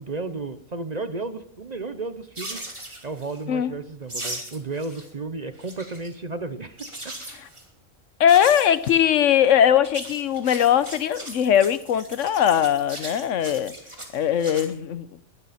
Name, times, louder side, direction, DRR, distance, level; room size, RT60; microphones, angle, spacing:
voice 1, 0.0-2.7 3.0-7.1, right 3 dB, 35° right, 0.8 m, -33 dB
sound 1, 2.4-3.4 4.1-5.1 5.4-6.1 6.8-7.6 8.3-9.0 9.7-14.7, right 1 dB, 20° right, 2.8 m, -38 dB
voice 2, 8.2-13.7 14.1-15.1, left 9 dB, 75° left, 1.1 m, -20 dB
20.0 x 12.0 x 4.2 m
omnidirectional pair, 1.3 m